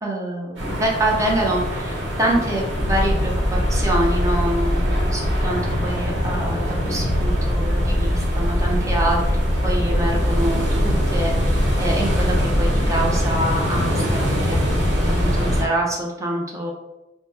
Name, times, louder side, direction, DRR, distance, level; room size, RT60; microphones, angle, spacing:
voice 1, 0.0-14.6 15.1-16.7, right 1 dB, 20° right, -2 dB, 0.6 m, -25 dB
sound 1, 0.6-15.6, equal, 85° right, 0.9 m, -26 dB
sound 2, 2.7-15.6, equal, 60° left, 0.5 m, -23 dB
2.9 x 2.1 x 3.3 m, 0.99 s
head